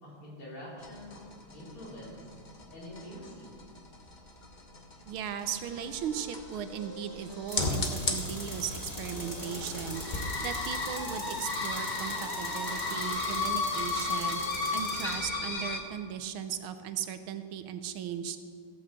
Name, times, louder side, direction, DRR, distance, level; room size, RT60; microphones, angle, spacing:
voice 1, 0.0-1.1 1.5-2.3 2.7-3.5, left 1 dB, 85° left, -7 dB, 4.7 m, -45 dB
sound 1, 0.8-15.8, left 3 dB, 35° left, 0.8 m, -35 dB
voice 2, 5.1-10.0 10.4-14.4 14.7-18.4, right 9 dB, 75° right, 9 dB, 1.5 m, -37 dB
sound 2, 5.7-10.0 11.0-15.6, right 2 dB, 45° right, 2.5 m, -52 dB
Tools, 7.5-15.2, equal, 10° left, 1.6 m, -42 dB
15.0 x 6.0 x 7.4 m, 2.2 s
omnidirectional pair, 2.4 m